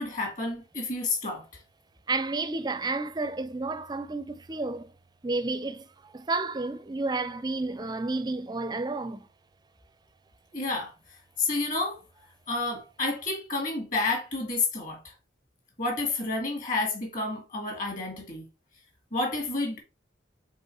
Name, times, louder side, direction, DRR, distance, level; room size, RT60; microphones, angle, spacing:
voice 1, 0.0-1.4 10.5-10.9 11.4-12.0 12.5-15.0 15.8-18.4 19.1-19.8, left 3 dB, 40° left, 2.3 m, -30 dB
voice 2, 2.1-4.9 5.2-9.3, right 3 dB, 20° right, 0.5 m, -31 dB
5.3 x 4.1 x 4.5 m
head